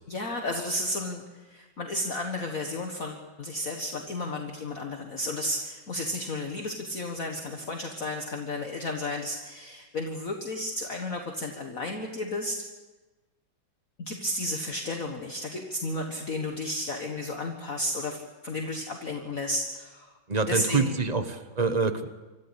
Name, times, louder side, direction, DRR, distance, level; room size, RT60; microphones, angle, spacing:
voice 1, 0.1-12.6 14.1-20.1 20.4-21.0, left 1 dB, 45° left, 2 dB, 1.9 m, -33 dB
voice 2, 20.3-22.1, right 4 dB, 25° right, 9 dB, 1.0 m, -26 dB
26.0 x 14.0 x 8.2 m, 1.2 s
omnidirectional pair, 2.2 m